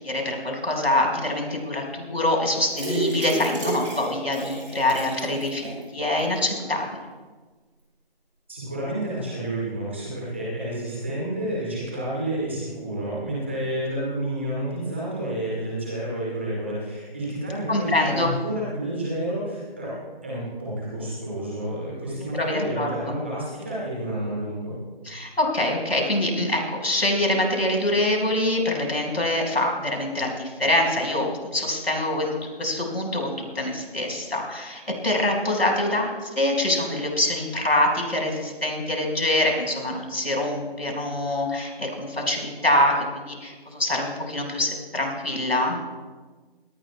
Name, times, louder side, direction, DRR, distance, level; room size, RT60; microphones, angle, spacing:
voice 1, 0.0-7.0 17.7-18.3 22.4-23.1 25.1-45.8, left 1 dB, 80° left, 1 dB, 5.5 m, -25 dB
sound 1, 2.7-5.8 6.2-6.3 6.6-6.7, right 2 dB, 30° right, 6.3 m, -31 dB
voice 2, 8.5-19.9 20.2-24.8, right 1 dB, 10° right, -6 dB, 2.1 m, -30 dB
22.5 x 19.0 x 2.4 m, 1.3 s
figure-of-eight pair, 175°, 30 cm